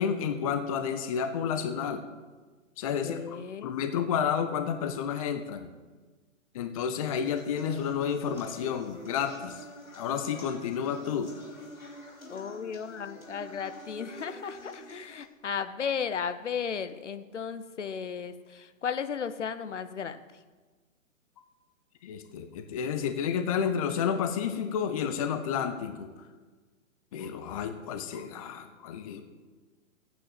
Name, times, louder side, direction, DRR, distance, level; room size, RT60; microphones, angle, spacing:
voice 1, 0.0-2.0 2.8-5.7 6.5-9.6 9.9-11.3 22.0-26.1 27.1-29.2, left 7 dB, 25° left, 8 dB, 0.7 m, -31 dB
voice 2, 2.9-3.7 12.3-20.2, left 7 dB, 60° left, 11 dB, 1.0 m, -35 dB
sound 1, 7.2-15.2, left 1 dB, 80° left, 3.2 m, -46 dB
13.0 x 9.2 x 7.6 m, 1.3 s
figure-of-eight pair, 125°, 41 cm